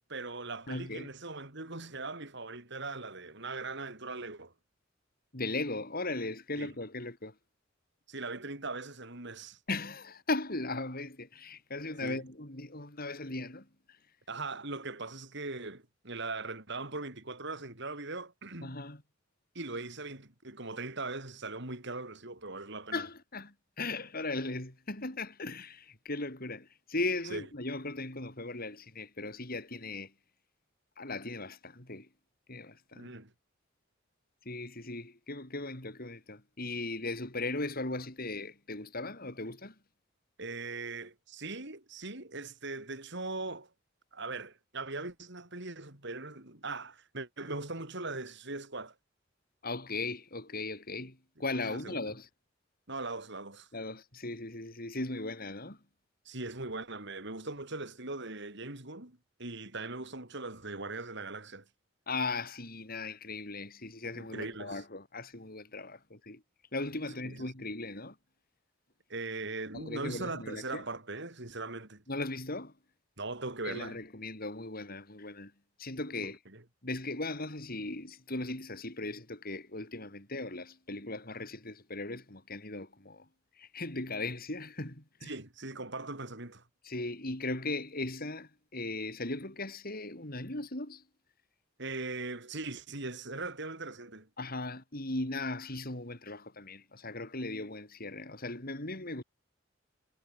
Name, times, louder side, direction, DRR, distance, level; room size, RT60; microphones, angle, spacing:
voice 1, 0.0-4.5 6.6-6.7 8.1-9.6 12.0-12.2 14.3-18.8 19.5-23.0 27.3-27.5 32.9-33.3 40.4-43.7 44.1-48.9 51.7-52.1 52.9-53.7 56.3-61.6 64.1-64.8 67.2-67.5 69.1-72.0 73.2-74.0 76.2-76.6 85.2-86.6 91.8-94.3, right 3 dB, 65° right, 5.7 m, -40 dB
voice 2, 0.7-1.1 5.3-7.3 9.7-14.0 18.6-19.0 22.9-30.1 31.0-32.1 32.5-33.1 34.4-39.7 49.6-52.3 53.7-55.8 62.1-66.4 66.7-68.1 69.7-70.8 72.1-72.7 73.6-75.5 75.8-76.4 76.8-83.2 83.6-85.3 86.8-91.0 94.4-99.2, left 2 dB, 50° left, 6.4 m, -38 dB
head